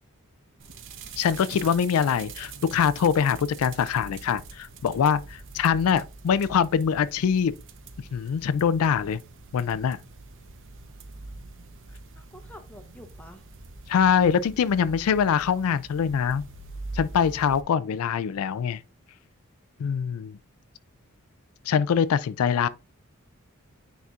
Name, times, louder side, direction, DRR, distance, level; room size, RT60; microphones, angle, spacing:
sound 1, 0.6-17.6, right 3 dB, 60° right, 0.8 m, -44 dB
voice 1, 1.2-7.5 8.1-9.2 9.5-10.0 13.9-16.4 16.9-18.8 19.8-20.4 21.7-22.7, left 7 dB, 75° left, 0.4 m, -23 dB
voice 2, 12.2-13.4, left 1 dB, 5° left, 0.8 m, -48 dB
9.4 x 4.2 x 2.4 m
head